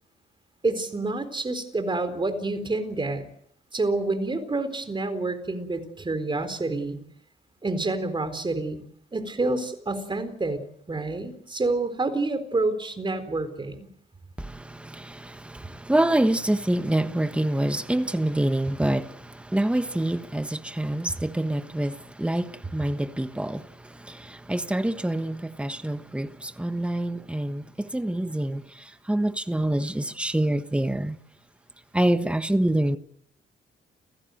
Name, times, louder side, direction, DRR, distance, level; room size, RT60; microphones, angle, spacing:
voice 1, 0.6-3.2 3.7-7.0 7.6-8.8 9.1-10.6 10.9-13.9, right 2 dB, 25° right, 4.2 m, -28 dB
voice 2, 14.4-31.2 31.9-33.0, right 1 dB, 5° right, 1.3 m, -26 dB
29.0 x 16.0 x 7.9 m
cardioid pair, 90°, 20 cm